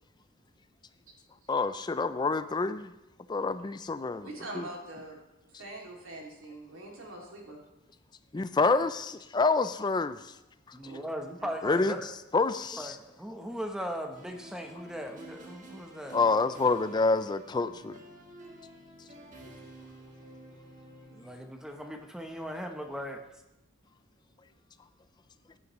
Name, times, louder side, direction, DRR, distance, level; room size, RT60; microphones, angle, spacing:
voice 1, 1.5-2.9 3.3-4.3 4.5-4.7 8.3-10.2 11.6-11.9 12.3-13.0 16.1-18.0, left 3 dB, 20° left, 0.4 m, -27 dB
voice 2, 4.2-5.2 5.5-7.6 10.8-11.0 11.4-11.8 19.8-20.5 21.0-21.1, right 1 dB, 90° right, 2.5 m, -44 dB
voice 3, 10.7-12.0 12.7-16.2 17.6-17.8 21.1-23.2, equal, 5° right, 0.9 m, -38 dB
sound 1, 14.1-21.6, right 1 dB, 40° right, 1.4 m, -50 dB
14.0 x 9.7 x 3.1 m
head